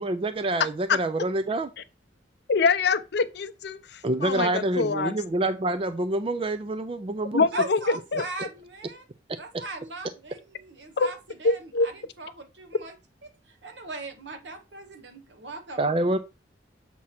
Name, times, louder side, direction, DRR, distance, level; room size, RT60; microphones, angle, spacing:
voice 1, 0.0-1.7 4.0-7.5 15.8-16.2, right 2 dB, 30° right, 0.4 m, -27 dB
voice 2, 2.5-5.1 7.3-8.2 11.0-11.1 11.4-11.9, left 4 dB, 60° left, 0.5 m, -24 dB
voice 3, 7.5-9.1 9.4-13.0 13.2-15.9, right 2 dB, 70° right, 1.1 m, -40 dB
7.5 x 2.8 x 5.8 m
head